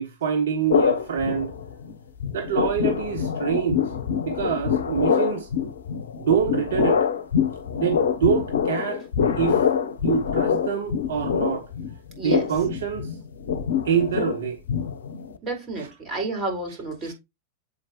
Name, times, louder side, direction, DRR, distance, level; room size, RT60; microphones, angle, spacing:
voice 1, 0.0-1.5 2.3-3.8 4.2-5.5 6.2-7.1 7.7-9.0 9.4-9.7 10.0-11.7 12.2-13.2 13.8-14.6 15.8-15.9 17.0-17.1, right 7 dB, 60° right, 0.9 m, -25 dB
sound 1, 0.7-1.9 2.2-15.4, left 7 dB, 65° left, 0.8 m, -25 dB
voice 2, 12.2-12.5 15.4-17.1, right 2 dB, 25° right, 4.4 m, -30 dB
7.9 x 4.4 x 3.0 m
figure-of-eight pair, 90°, 0 cm